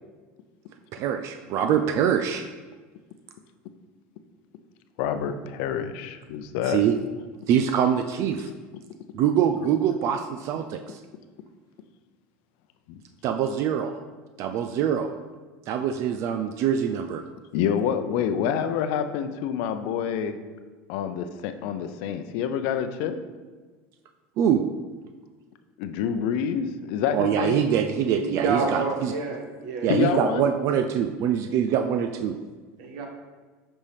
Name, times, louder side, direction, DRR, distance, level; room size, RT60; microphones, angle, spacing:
voice 1, 0.9-2.4 6.6-6.9 7.5-8.5 9.1-11.0 13.2-13.9 14.4-15.1 15.7-17.2 24.4-24.6 27.1-29.1 29.8-32.4, right 8 dB, 55° right, 7 dB, 0.4 m, -24 dB
voice 2, 5.0-6.8 12.9-13.0 17.5-20.4 20.9-23.2 25.8-27.7 29.9-30.5, left 8 dB, 70° left, 9 dB, 0.6 m, -27 dB
voice 3, 28.1-30.5 32.8-33.1, right 4 dB, 70° right, 3 dB, 1.3 m, -29 dB
8.1 x 5.4 x 3.4 m, 1.4 s
supercardioid pair, 110°, 6 cm